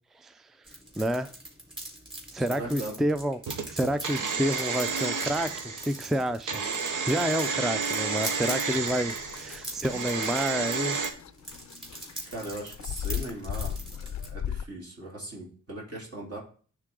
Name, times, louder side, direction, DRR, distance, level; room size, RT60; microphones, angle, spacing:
sound 1, 0.7-14.3, right 1 dB, 15° right, 3.9 m, -43 dB
voice 1, 1.0-1.3 2.3-3.4 3.7-5.5 5.8-6.6 7.1-11.0, equal, ahead, 0.4 m, -29 dB
voice 2, 2.3-3.0 12.3-16.4, right 1 dB, 50° right, 2.9 m, -39 dB
sound 2, 3.5-11.1, right 5 dB, 80° right, 0.9 m, -31 dB
sound 3, 8.6-14.6, left 9 dB, 65° left, 0.5 m, -38 dB
11.5 x 3.8 x 3.7 m
cardioid pair, 65°, 31 cm